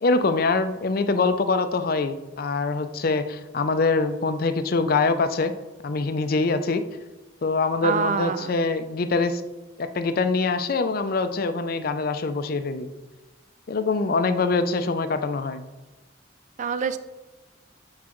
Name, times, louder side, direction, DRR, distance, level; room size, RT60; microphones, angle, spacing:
voice 1, 0.0-5.5 5.8-6.8 7.4-9.4 9.8-12.9 13.7-15.6, left 3 dB, 50° left, 10 dB, 0.4 m, -24 dB
voice 2, 7.8-8.5 16.6-17.0, right 6 dB, 40° right, 12 dB, 0.3 m, -26 dB
8.3 x 4.7 x 3.0 m, 1.1 s
head